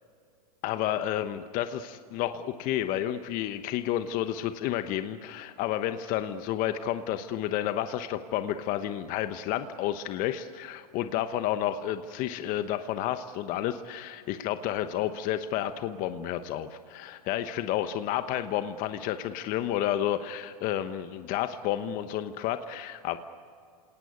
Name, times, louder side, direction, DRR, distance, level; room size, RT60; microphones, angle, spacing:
voice 1, 0.6-23.2, left 11 dB, 45° left, 10 dB, 1.1 m, -31 dB
27.0 x 18.5 x 9.6 m, 2.4 s
hypercardioid pair, 120°, 20 cm